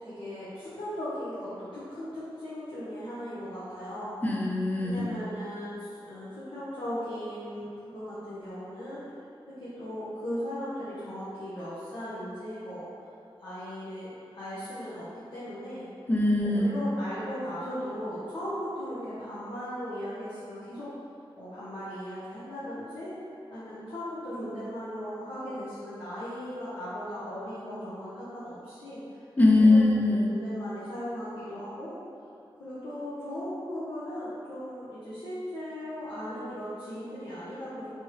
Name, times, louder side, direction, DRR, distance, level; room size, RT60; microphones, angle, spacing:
voice 1, 0.0-4.2 4.8-9.0 9.6-12.9 13.4-15.1 15.3-15.8 16.4-20.9 21.4-23.1 23.5-29.2 29.7-29.8 30.3-31.9 32.6-38.0, equal, 60° left, -13 dB, 0.8 m, -37 dB
voice 2, 4.2-5.0 16.1-16.7 29.4-30.3, left 2 dB, 15° left, -1 dB, 0.5 m, -21 dB
3.5 x 2.9 x 3.0 m, 2.5 s
wide cardioid pair, 85°, 10 cm